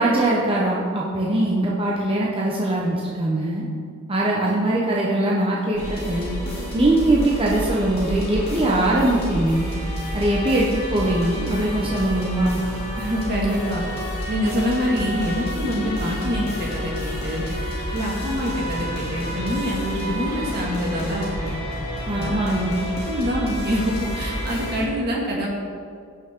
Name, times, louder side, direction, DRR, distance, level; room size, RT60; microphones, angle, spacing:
voice 1, 0.0-3.6 4.1-6.3 6.7-9.7 10.1-12.6 22.1-22.7, right 1 dB, 25° right, -4 dB, 1.0 m, -21 dB
sound 1, 5.7-24.8, equal, 25° left, 3.0 m, -29 dB
voice 2, 13.0-13.8 14.3-17.4 17.9-21.5 22.1-25.5, equal, 45° right, -3 dB, 2.1 m, -25 dB
16.5 x 6.1 x 3.8 m, 2.2 s
head